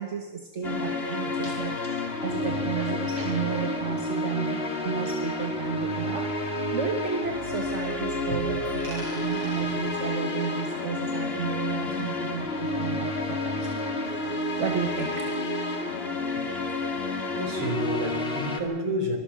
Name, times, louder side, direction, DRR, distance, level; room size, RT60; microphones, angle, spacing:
voice 1, 0.0-13.7 14.1-15.3 15.7-15.9 17.1-17.2, right 6 dB, 35° right, 5 dB, 1.5 m, -33 dB
sound 1, 0.6-18.6, left 2 dB, 30° left, 2.1 m, -30 dB
voice 2, 1.3-1.7 2.3-3.4 5.0-5.1 8.3-8.4 9.6-9.7 16.3-16.5 17.3-19.2, equal, 65° right, 3 dB, 5.2 m, -32 dB
Coin (dropping), 8.6-11.4 11.7-13.7, equal, 85° right, 9.0 m, -47 dB
25.5 x 20.5 x 6.2 m, 1.1 s
omnidirectional pair, 2.4 m